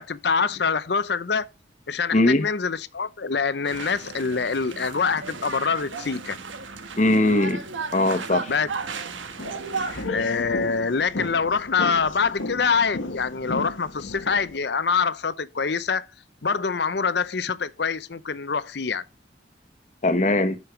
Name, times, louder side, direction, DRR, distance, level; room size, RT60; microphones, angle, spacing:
voice 1, 0.0-1.5 1.9-6.4 8.5-8.7 10.1-16.1 16.4-19.0, left 5 dB, 60° left, 0.6 m, -25 dB
voice 2, 2.1-2.4 7.0-7.6 7.9-8.5 20.0-20.6, left 2 dB, 40° left, 1.1 m, -20 dB
sound 1, 3.6-10.1, right 4 dB, 80° right, 1.4 m, -34 dB
sound 2, 9.3-14.6, left 2 dB, 85° left, 1.2 m, -34 dB
11.5 x 5.4 x 3.1 m
head